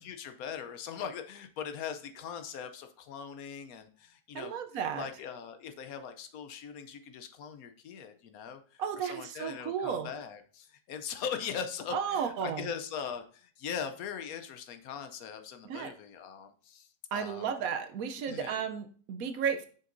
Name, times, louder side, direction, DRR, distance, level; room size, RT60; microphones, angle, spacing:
voice 1, 0.0-17.5 18.3-18.6, left 7 dB, 70° left, 8 dB, 1.0 m, -41 dB
voice 2, 4.3-5.1 8.8-10.1 11.9-12.6 15.7-15.9 17.1-19.7, right 7 dB, 70° right, 8 dB, 1.0 m, -33 dB
6.7 x 6.5 x 2.6 m, 0.44 s
omnidirectional pair, 1.7 m